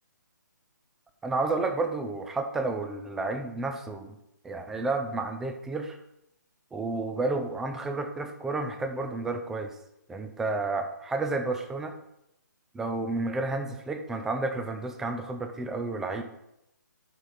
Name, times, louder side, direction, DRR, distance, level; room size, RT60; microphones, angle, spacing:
voice 1, 1.2-4.2 4.4-6.0 6.7-9.7 10.1-11.9 12.7-16.2, right 3 dB, 5° right, 6 dB, 0.4 m, -31 dB
12.0 x 4.2 x 4.9 m, 0.84 s
hypercardioid pair, 160°, 11 cm